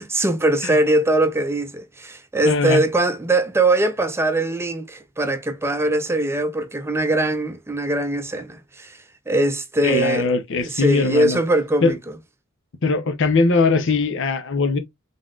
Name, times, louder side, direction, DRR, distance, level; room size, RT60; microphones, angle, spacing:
voice 1, 0.0-9.0 9.3-10.3 10.7-11.9, right 2 dB, 10° right, 0.5 m, -21 dB
voice 2, 2.4-2.8 9.8-11.4 11.8-11.9 12.8-14.8, left 3 dB, 65° left, 0.7 m, -20 dB
3.9 x 3.7 x 2.4 m
head